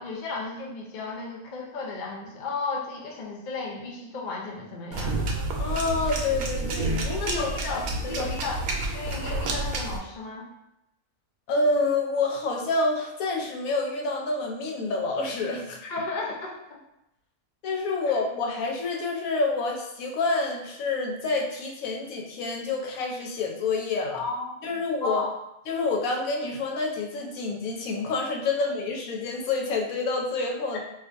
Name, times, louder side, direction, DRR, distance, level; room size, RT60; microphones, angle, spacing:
voice 1, 0.0-5.3 7.1-8.6 8.9-10.5 15.8-16.8 18.0-18.1 24.1-25.3 30.7-30.8, left 3 dB, 55° left, -1 dB, 0.5 m, -34 dB
sound 1, 4.9-10.0, right 2 dB, 85° right, 1.1 m, -29 dB
voice 2, 5.6-7.3 7.7-8.3 11.5-15.8 17.6-24.2 24.6-25.2 25.7-30.8, left 3 dB, 75° left, 0 dB, 1.0 m, -28 dB
4.4 x 2.4 x 2.5 m, 0.86 s
omnidirectional pair, 1.5 m